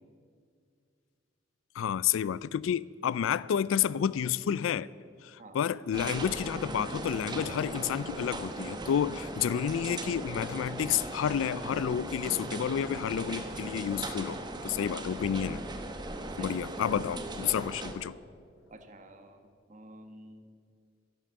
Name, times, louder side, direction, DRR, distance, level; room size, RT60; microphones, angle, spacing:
voice 1, 1.8-4.9 5.2-15.6 16.4-18.2, left 8 dB, 85° left, 0.3 m, -30 dB
sound 1, 5.9-17.9, right 2 dB, 20° right, 1.0 m, -38 dB
voice 2, 18.7-20.5, right 1 dB, 40° right, 1.3 m, -51 dB
13.5 x 11.0 x 6.8 m
head